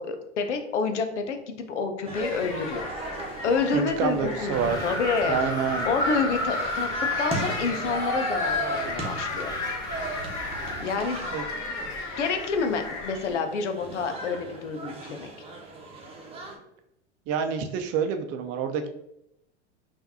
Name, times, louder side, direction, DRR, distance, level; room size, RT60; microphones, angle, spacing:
voice 1, 0.0-2.9 3.4-5.4 5.8-6.9 7.2-9.5 10.8-11.3 12.2-15.3, left 5 dB, 80° left, 7 dB, 0.7 m, -28 dB
sound 1, 2.0-16.5, right 2 dB, 15° right, 1.0 m, -37 dB
sound 2, 2.1-13.4, left 3 dB, 50° left, 1.2 m, -37 dB
voice 2, 3.7-4.8 5.2-5.9 11.3-11.4 17.3-18.9, right 6 dB, 45° right, 6 dB, 0.6 m, -27 dB
Wind, 4.5-10.9, left 2 dB, 10° left, 1.0 m, -31 dB
5.6 x 2.6 x 2.7 m, 0.81 s
hypercardioid pair, 90°, 35 cm